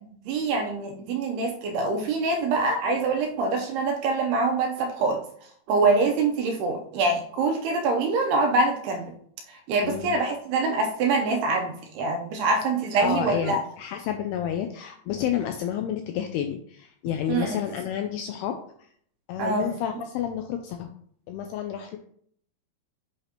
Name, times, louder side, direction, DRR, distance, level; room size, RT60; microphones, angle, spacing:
voice 1, 0.3-5.2 5.7-9.1 9.5-13.6 17.3-17.6 19.4-19.7, right 3 dB, 80° right, 3 dB, 2.4 m, -25 dB
voice 2, 9.8-10.2 13.0-18.6 19.3-20.9 21.3-22.0, left 9 dB, 85° left, 5 dB, 2.3 m, -30 dB
8.3 x 2.9 x 5.0 m, 0.62 s
omnidirectional pair, 5.1 m